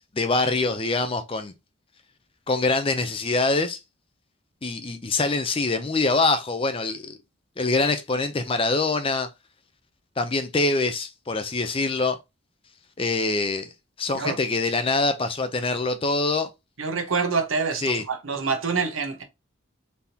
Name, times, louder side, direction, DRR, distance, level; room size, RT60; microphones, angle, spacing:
voice 1, 0.2-1.5 2.5-3.8 4.6-7.2 7.6-9.3 10.2-12.2 13.0-13.7 14.0-16.5 17.8-18.0, left 3 dB, 25° left, 0.5 m, -24 dB
voice 2, 16.8-19.2, right 5 dB, 80° right, 1.0 m, -26 dB
4.1 x 3.5 x 2.8 m
head